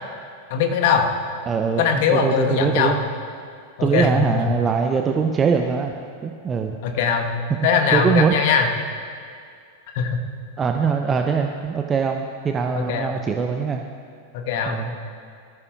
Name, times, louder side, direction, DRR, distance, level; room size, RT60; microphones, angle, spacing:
voice 1, 0.5-1.1 1.8-3.0 3.8-4.4 6.8-7.3 7.6-8.7 9.9-10.1 12.8-13.1 14.3-14.8, left 6 dB, 50° left, 3 dB, 1.3 m, -21 dB
voice 2, 1.5-3.0 3.8-5.9 6.2-6.8 7.9-8.3 10.6-13.8 14.7-14.9, right 5 dB, 20° right, 4 dB, 0.6 m, -22 dB
19.0 x 14.5 x 2.4 m, 2.2 s
figure-of-eight pair, 90°, 0 cm